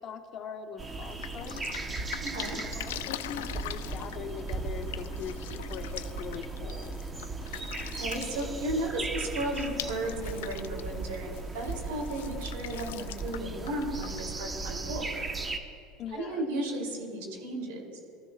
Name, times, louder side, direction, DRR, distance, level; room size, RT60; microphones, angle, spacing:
voice 1, 0.0-1.8 2.5-7.0 16.0-16.5, left 7 dB, 50° left, 6 dB, 1.0 m, -42 dB
Drip, 0.8-14.9, left 13 dB, 80° left, 0.3 m, -43 dB
sound 1, 0.8-15.6, right 3 dB, 25° right, 1.0 m, -37 dB
voice 2, 2.2-2.6 7.9-15.1 16.1-18.0, right 1 dB, 80° right, 0 dB, 3.0 m, -34 dB
20.5 x 13.5 x 2.4 m, 2.4 s
hypercardioid pair, 90°, 0 cm